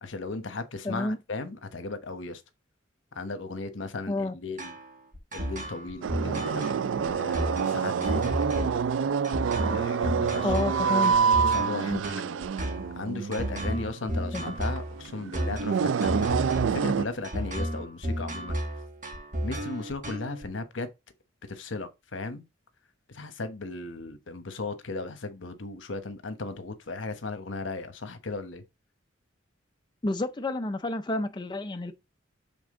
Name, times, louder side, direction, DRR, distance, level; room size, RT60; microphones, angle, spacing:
voice 1, 0.0-2.4 3.1-4.8 5.3-8.8 9.6-10.5 10.8-12.0 12.9-18.6 19.4-20.9 21.5-22.4 23.1-28.6, left 3 dB, 75° left, 1.1 m, -36 dB
voice 2, 0.8-1.2 4.1-4.4 10.4-11.1 11.9-12.0 14.3-14.5 30.0-31.9, left 2 dB, 25° left, 0.5 m, -30 dB
sound 1, 4.6-20.4, equal, 45° right, 1.8 m, -33 dB
sound 2, 6.0-17.0, right 6 dB, 75° right, 0.4 m, -27 dB
7.1 x 3.7 x 3.7 m
head